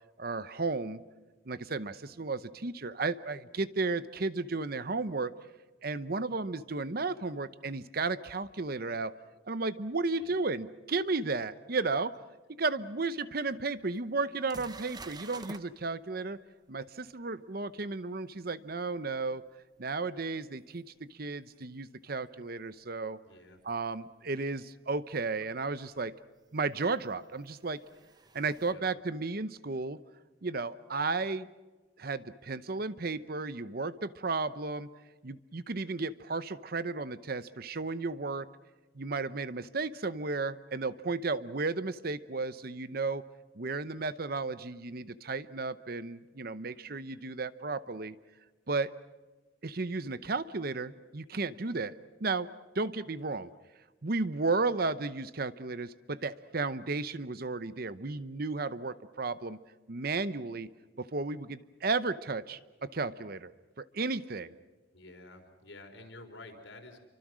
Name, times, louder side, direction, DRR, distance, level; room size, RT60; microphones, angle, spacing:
voice 1, 0.2-1.0 1.5-5.3 5.8-9.1 9.5-12.1 12.6-16.4 16.7-19.4 19.8-23.2 23.6-26.1 26.5-27.8 28.3-30.0 30.4-31.5 32.0-34.9 35.2-38.5 38.9-43.2 43.6-48.2 48.7-48.9 49.6-52.5 52.7-53.5 54.0-59.6 59.9-60.7 61.0-63.5 63.8-64.5, right 3 dB, 50° right, 14 dB, 0.8 m, -34 dB
sound 1, 13.3-13.4 14.0-14.1 14.5-15.6 20.8-20.9 23.6-23.7 25.4-25.5 26.9-28.7, right 3 dB, 20° right, 0.9 m, -49 dB
voice 2, 23.2-23.6 28.6-28.8 64.9-67.0, left 2 dB, 70° left, 4 dB, 4.2 m, -50 dB
29.0 x 24.5 x 6.3 m, 1.2 s
head